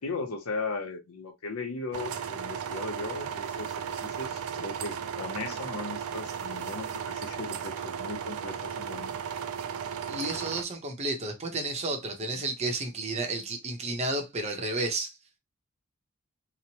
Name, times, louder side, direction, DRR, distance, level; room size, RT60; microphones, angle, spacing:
voice 1, 0.0-9.2 12.3-12.4, left 3 dB, 85° left, 0.6 m, -37 dB
sound 1, 1.9-10.6, right 8 dB, 80° right, 0.4 m, -35 dB
voice 2, 10.1-15.1, right 2 dB, 30° right, 0.7 m, -32 dB
2.9 x 2.0 x 2.8 m
head